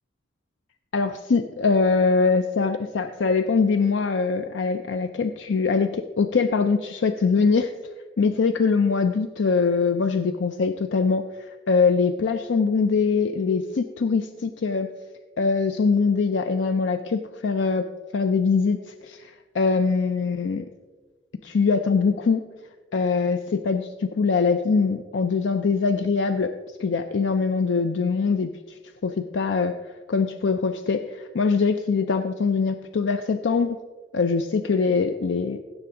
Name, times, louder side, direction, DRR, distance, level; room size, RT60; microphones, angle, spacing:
voice 1, 0.9-7.7 8.2-14.9 15.4-17.9 18.1-20.6 21.4-22.5 22.9-29.7 30.1-33.8 34.1-35.6, left 4 dB, 80° left, 8 dB, 0.5 m, -23 dB
15.5 x 6.9 x 3.7 m, 1.3 s
head